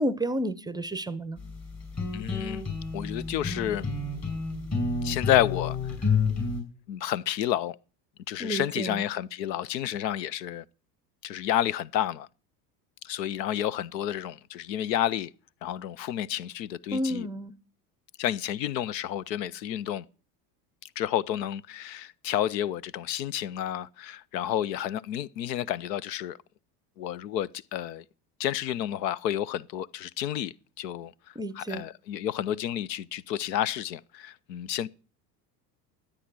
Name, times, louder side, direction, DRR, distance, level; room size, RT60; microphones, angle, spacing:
voice 1, 0.0-1.4 8.4-9.0 16.9-17.5 31.4-31.8, equal, 10° right, 0.5 m, -31 dB
sound 1, 1.4-6.6, left 4 dB, 30° left, 5.3 m, -30 dB
voice 2, 2.1-2.6 2.9-3.9 5.0-5.8 6.9-7.8 8.3-10.6 11.2-12.3 13.0-15.3 15.6-17.3 18.2-20.1 20.8-26.4 27.0-28.0 28.4-34.9, left 11 dB, 90° left, 0.6 m, -30 dB
13.0 x 8.6 x 6.1 m
hypercardioid pair, 90°, 49 cm